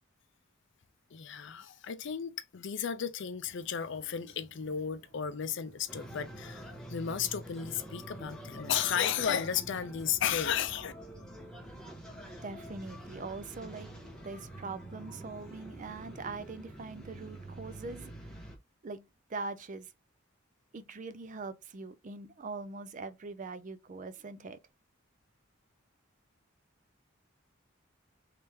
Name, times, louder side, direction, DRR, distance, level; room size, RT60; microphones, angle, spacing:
voice 1, 1.1-10.9, left 8 dB, 60° left, 0.5 m, -34 dB
sound 1, 3.4-18.2, equal, 55° right, 1.5 m, -60 dB
sound 2, 5.9-18.6, right 1 dB, 5° left, 1.2 m, -47 dB
voice 2, 12.4-13.9 14.2-18.4 18.8-19.9 20.7-24.6, right 3 dB, 40° right, 0.5 m, -42 dB
3.5 x 3.3 x 2.9 m
head